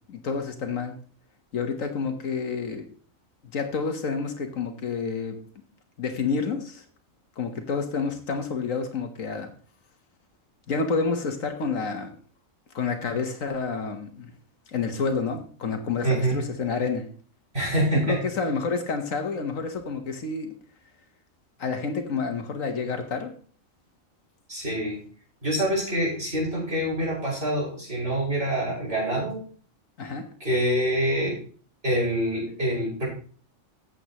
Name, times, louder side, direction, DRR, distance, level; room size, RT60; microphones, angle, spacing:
voice 1, 0.1-1.0 1.5-2.9 3.5-5.4 6.0-6.8 7.4-9.5 10.7-12.2 12.7-14.3 14.7-17.1 18.1-20.5 21.6-23.3 30.0-30.2, left 5 dB, 70° left, 6 dB, 1.6 m, -29 dB
voice 2, 16.0-16.4 17.5-18.2 24.5-25.0 25.4-29.4 30.4-31.4 31.8-33.1, right 1 dB, 45° right, -4 dB, 6.0 m, -25 dB
14.5 x 7.9 x 3.0 m, 0.42 s
omnidirectional pair, 1.4 m